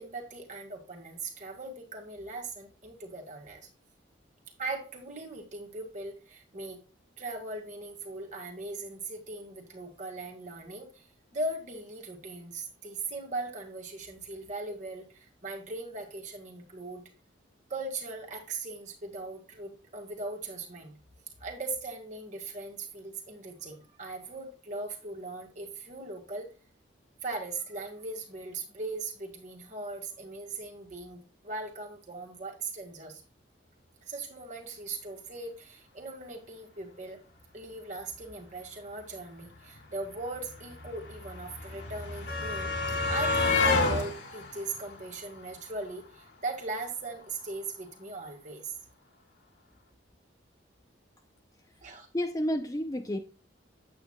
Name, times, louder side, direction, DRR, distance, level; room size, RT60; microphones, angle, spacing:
voice 1, 0.0-3.7 4.6-6.8 7.2-17.0 17.7-21.0 21.4-26.5 27.2-33.2 34.0-37.2 37.5-48.7 51.8-52.1, right 2 dB, 40° right, 2.0 m, -39 dB
sound 1, 39.5-39.6 39.7-45.9 47.1-47.2 47.5-47.6, left 3 dB, 65° left, 2.2 m, -30 dB
voice 2, 51.8-53.2, equal, 20° left, 0.6 m, -31 dB
8.8 x 8.2 x 2.3 m
head